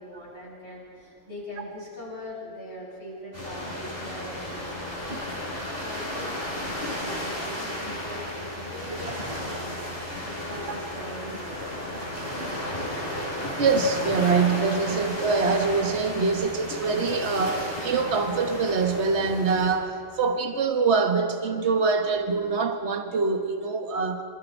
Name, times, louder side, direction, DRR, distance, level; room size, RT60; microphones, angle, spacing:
voice 1, 0.0-5.1 5.7-11.6, left 1 dB, 70° left, -6 dB, 8.5 m, -41 dB
sound 1, 3.3-19.7, left 1 dB, 50° left, 6.0 m, -33 dB
voice 2, 13.6-24.2, right 4 dB, 65° right, 5 dB, 1.6 m, -24 dB
27.5 x 26.5 x 4.5 m, 2.3 s
omnidirectional pair, 1.2 m